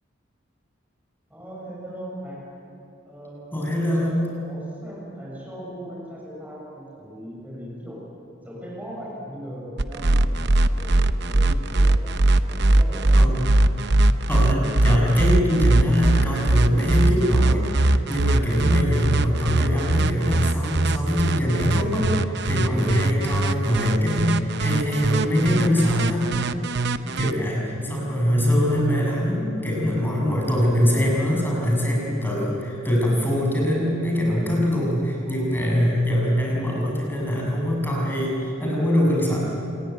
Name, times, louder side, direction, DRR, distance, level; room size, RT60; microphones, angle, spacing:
voice 1, 1.3-2.5 3.1-3.6 3.9-8.0 8.4-12.1 12.5-13.4 27.7-27.9, equal, 10° right, -5 dB, 7.1 m, -39 dB
voice 2, 3.5-4.2 13.1-13.5 14.3-26.5 27.2-39.4, equal, 10° left, -3 dB, 7.0 m, -23 dB
sound 1, 9.8-27.3, right 2 dB, 60° right, 0.9 m, -20 dB
27.0 x 21.5 x 9.3 m, 2.9 s
head